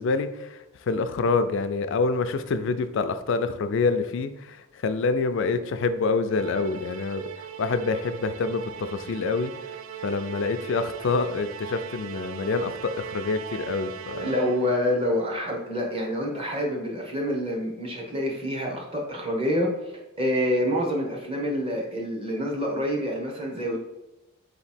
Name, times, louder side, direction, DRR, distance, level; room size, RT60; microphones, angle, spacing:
voice 1, 0.0-9.8 10.0-14.3, left 4 dB, 60° left, 10 dB, 0.3 m, -27 dB
Musical instrument, 6.3-14.8, right 9 dB, 70° right, 0.3 m, -39 dB
voice 2, 14.2-19.9 20.2-23.8, equal, 25° right, -1 dB, 0.9 m, -27 dB
4.1 x 3.0 x 4.2 m, 0.97 s
head